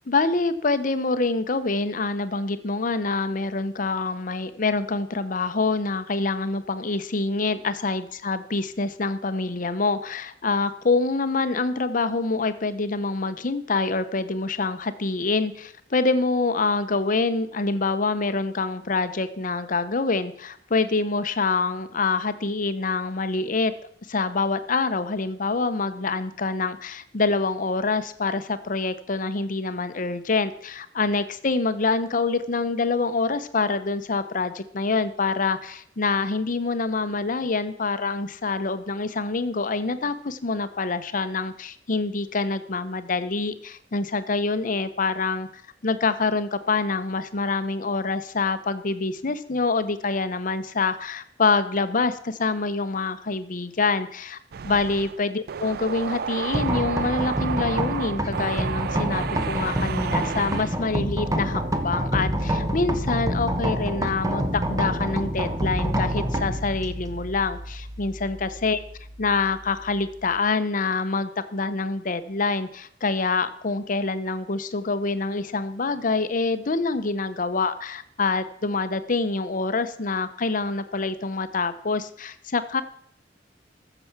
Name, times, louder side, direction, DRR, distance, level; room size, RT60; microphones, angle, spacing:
voice 1, 0.1-23.7 24.1-54.4 54.6-68.8 69.2-82.8, left 3 dB, 50° left, 12 dB, 0.8 m, -26 dB
sound 1, 54.5-60.8, right 7 dB, 60° right, 0.4 m, -32 dB
sound 2, 56.5-70.4, equal, 20° right, 1.1 m, -28 dB
14.5 x 6.9 x 5.9 m, 0.65 s
head